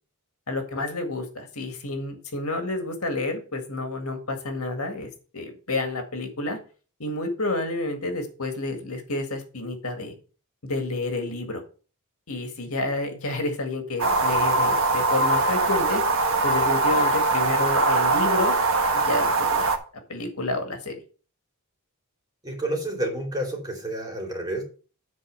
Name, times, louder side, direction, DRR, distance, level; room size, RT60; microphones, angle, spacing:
voice 1, 0.5-6.6 7.0-10.1 10.6-11.6 12.3-16.0 16.4-18.6 18.9-19.7 20.1-21.0, left 2 dB, 70° left, 5 dB, 2.0 m, -30 dB
sound 1, 14.0-19.8, right 2 dB, 65° right, 1.3 m, -22 dB
voice 2, 22.4-24.6, right 1 dB, 20° right, 0 dB, 2.8 m, -29 dB
9.7 x 4.1 x 6.7 m, 0.37 s
head